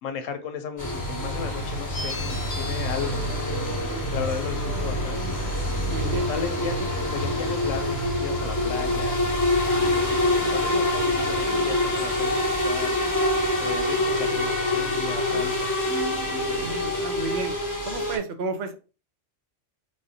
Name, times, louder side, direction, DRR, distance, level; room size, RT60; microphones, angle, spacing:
voice 1, 0.0-3.5 4.1-5.3 6.0-9.2 9.9-13.0 13.6-15.9, left 7 dB, 85° left, 0.9 m, -35 dB
sound 1, 0.8-18.2, left 1 dB, 15° left, 0.8 m, -26 dB
sound 2, 1.9-8.1, left 2 dB, 45° left, 0.7 m, -39 dB
voice 2, 5.9-6.3 16.6-17.5 17.9-18.7, right 3 dB, 65° right, 0.8 m, -32 dB
3.8 x 2.6 x 2.6 m
omnidirectional pair, 1.3 m